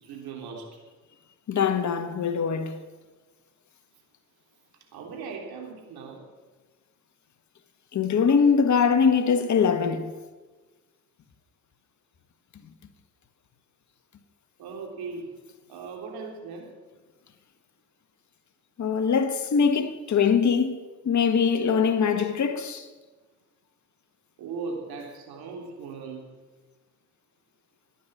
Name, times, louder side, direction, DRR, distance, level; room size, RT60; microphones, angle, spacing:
voice 1, 0.0-0.7 4.9-6.2 14.6-15.3 15.7-16.7 24.4-26.2, right 4 dB, 70° right, 3.7 m, -38 dB
voice 2, 1.5-2.8 7.9-10.1 18.8-20.8 21.0-22.9, left 6 dB, 45° left, 1.6 m, -22 dB
15.0 x 10.0 x 7.4 m
hypercardioid pair, 55°, 39 cm